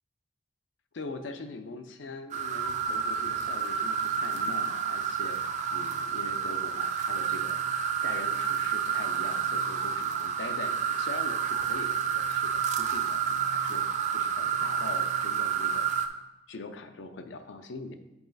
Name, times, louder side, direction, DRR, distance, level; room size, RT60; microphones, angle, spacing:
voice 1, 0.9-5.4 5.7-7.6 8.0-13.8 14.1-15.9 16.5-17.9, left 3 dB, 85° left, 8 dB, 0.5 m, -42 dB
sound 1, 2.3-16.1, right 7 dB, 40° right, 0.4 m, -29 dB
7.2 x 4.0 x 3.9 m, 0.96 s
head